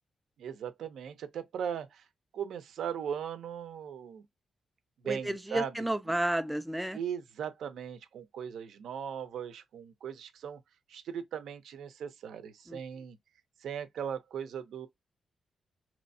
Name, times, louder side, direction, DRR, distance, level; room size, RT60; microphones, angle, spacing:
voice 1, 0.4-2.0 2.3-4.2 5.0-5.8 6.9-10.6 10.9-13.2 13.6-14.9, right 8 dB, 85° right, 0.7 m, -38 dB
voice 2, 5.0-7.0 12.7-12.8, right 1 dB, 5° right, 0.5 m, -32 dB
4.2 x 3.0 x 2.7 m
cardioid pair, 85°, 0 cm